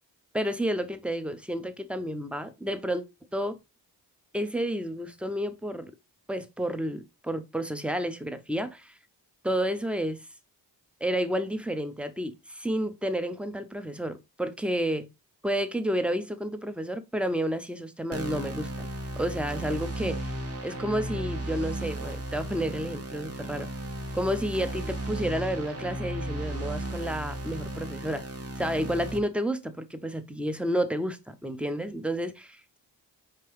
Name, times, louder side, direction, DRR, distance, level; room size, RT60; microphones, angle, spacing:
voice 1, 0.3-3.0 3.3-3.6 4.3-5.9 6.3-8.9 9.4-10.2 11.0-15.1 15.4-18.9 19.2-20.3 20.6-23.7 24.1-28.2 28.6-32.8, equal, 5° right, 0.6 m, -30 dB
sound 1, 18.1-29.2, right 1 dB, 30° right, 1.0 m, -35 dB
4.7 x 2.9 x 3.0 m
supercardioid pair, 45°, 45 cm